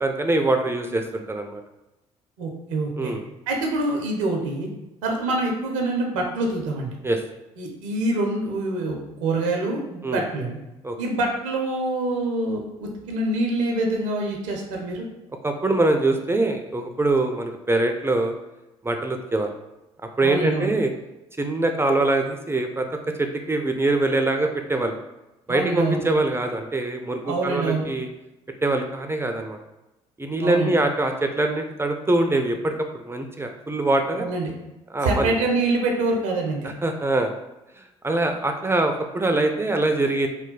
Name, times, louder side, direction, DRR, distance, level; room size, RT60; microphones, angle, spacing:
voice 1, 0.0-1.6 3.0-3.2 7.0-7.2 10.0-10.2 10.8-11.0 15.4-18.3 18.8-19.5 20.2-20.9 21.4-22.9 23.2-25.0 25.5-28.1 28.6-29.6 30.2-34.2 34.9-35.3 36.8-37.3 37.8-40.3, right 2 dB, 15° right, 5 dB, 0.4 m, -23 dB
voice 2, 2.4-3.1 3.5-4.7 5.0-6.9 7.6-10.6 11.0-15.1 20.2-20.7 25.5-26.0 27.2-27.9 30.4-30.7 34.2-34.5 35.0-36.7, right 2 dB, 80° right, 1 dB, 0.5 m, -25 dB
3.1 x 2.2 x 3.7 m, 0.98 s
hypercardioid pair, 50°, 16 cm